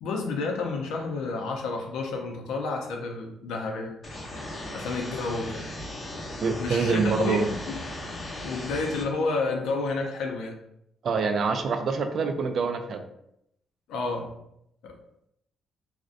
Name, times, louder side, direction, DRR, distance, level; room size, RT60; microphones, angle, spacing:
voice 1, 0.0-3.9 4.7-5.7 6.6-7.8 8.0-10.5 13.9-14.3 14.8-15.0, left 3 dB, 90° left, 2 dB, 0.4 m, -30 dB
sound 1, 4.0-9.0, left 1 dB, 35° left, 0.8 m, -37 dB
voice 2, 6.4-7.5 11.0-13.0, right 4 dB, 60° right, 6 dB, 0.3 m, -25 dB
2.4 x 2.1 x 2.5 m, 0.77 s
cardioid pair, 90°, 0 cm